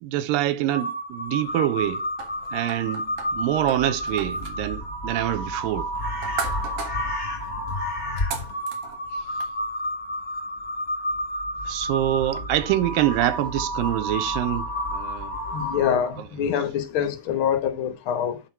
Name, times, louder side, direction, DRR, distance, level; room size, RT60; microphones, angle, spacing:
voice 1, 0.0-2.0 2.5-5.9 11.7-15.4, right 13 dB, 85° right, 2.4 m, -25 dB
Crow, 0.7-16.2, equal, 20° left, 1.4 m, -30 dB
sound 1, 2.2-9.5, right 6 dB, 65° right, 2.7 m, -39 dB
voice 2, 15.5-18.4, left 8 dB, 75° left, 1.2 m, -25 dB
9.1 x 4.3 x 4.6 m
omnidirectional pair, 4.0 m